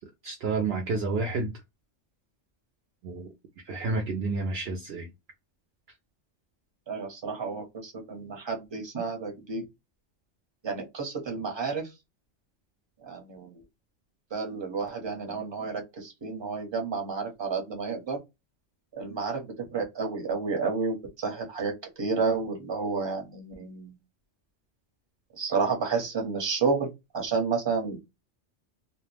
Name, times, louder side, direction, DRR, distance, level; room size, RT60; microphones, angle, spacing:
voice 1, 0.2-1.6 3.0-3.3 3.7-5.1, right 3 dB, 65° right, 0.7 m, -30 dB
voice 2, 6.9-9.7 10.6-11.9 13.0-13.6 14.3-18.2 18.9-24.0 25.4-28.0, right 4 dB, 25° right, 0.8 m, -31 dB
2.3 x 2.1 x 3.2 m
omnidirectional pair, 1.3 m